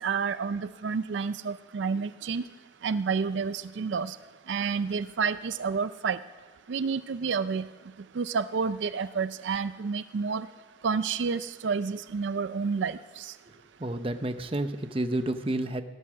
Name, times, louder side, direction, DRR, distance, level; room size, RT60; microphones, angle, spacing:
voice 1, 0.0-2.4 2.8-4.2 4.5-6.2 6.7-7.6 8.2-10.5 10.8-13.3, right 5 dB, 75° right, 14 dB, 0.4 m, -29 dB
voice 2, 13.8-15.8, right 1 dB, 30° right, 10 dB, 0.7 m, -30 dB
17.5 x 11.0 x 6.1 m, 1.3 s
head